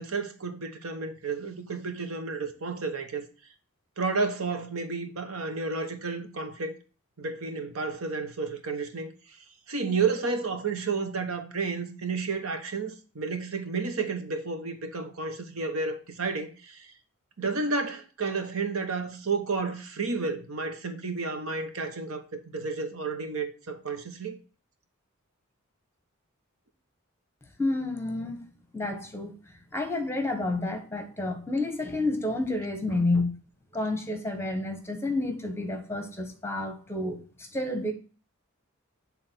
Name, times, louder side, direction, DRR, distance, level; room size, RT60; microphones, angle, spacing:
voice 1, 0.0-3.3 4.0-6.7 7.2-9.1 9.7-16.9 17.4-24.4 32.9-33.0, right 4 dB, 80° right, 1.1 m, -31 dB
voice 2, 27.6-28.4 28.7-29.3 29.7-33.3 33.7-37.2 37.5-37.9, left 2 dB, 10° left, 1.1 m, -29 dB
6.8 x 3.5 x 6.0 m
head